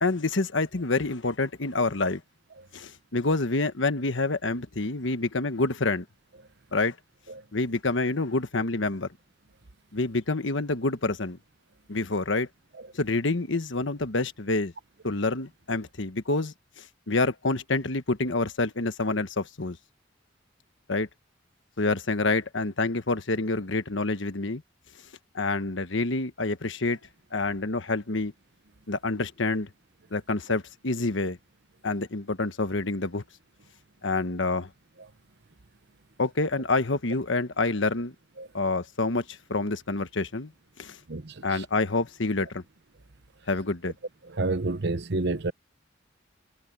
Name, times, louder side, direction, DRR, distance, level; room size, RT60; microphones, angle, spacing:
voice 1, 0.0-2.2 2.7-6.0 6.7-6.9 7.5-9.1 9.9-11.4 11.9-12.5 12.9-14.7 15.0-19.8 20.9-21.1 21.8-24.6 25.3-27.0 27.3-28.3 28.9-29.7 30.1-31.4 31.8-33.2 34.0-34.7 36.2-38.1 38.5-40.5 40.8-41.0 41.4-42.6 43.5-43.9, left 3 dB, 70° left, 1.3 m, -27 dB
voice 2, 41.1-41.6 44.3-45.5, right 2 dB, 65° right, 1.0 m, -29 dB
head